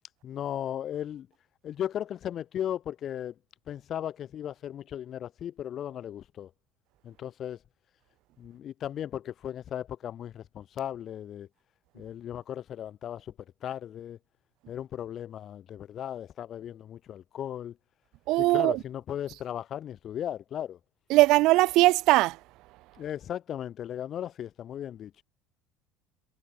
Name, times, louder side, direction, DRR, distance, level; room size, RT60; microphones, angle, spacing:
voice 1, 0.2-1.3 1.6-3.4 3.7-6.5 7.0-7.6 8.4-11.5 11.9-13.3 13.6-14.2 14.7-17.8 18.4-20.8 23.0-25.1, left 10 dB, 50° left, 2.7 m, -36 dB
voice 2, 18.3-18.8 21.1-22.4, right 19 dB, 65° right, 0.5 m, -20 dB
hypercardioid pair, 80°, 0 cm